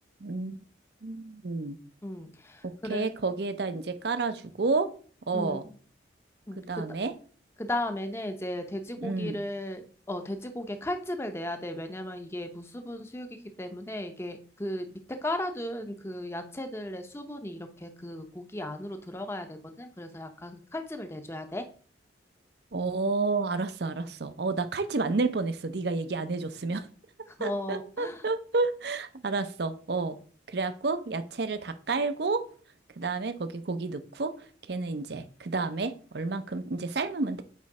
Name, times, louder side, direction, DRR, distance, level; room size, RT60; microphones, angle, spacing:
voice 1, 0.2-0.6 1.0-1.8 2.9-4.9 5.3-5.6 6.6-7.1 9.0-9.4 22.7-26.9 27.4-30.2 30.5-32.4 33.0-34.3 34.7-37.4, right 3 dB, 60° right, 11 dB, 0.6 m, -30 dB
voice 2, 2.0-3.1 5.3-5.7 6.5-6.8 7.6-9.8 10.1-21.6 27.4-28.2, left 1 dB, 15° left, 6 dB, 0.7 m, -36 dB
8.3 x 3.2 x 4.8 m, 0.42 s
head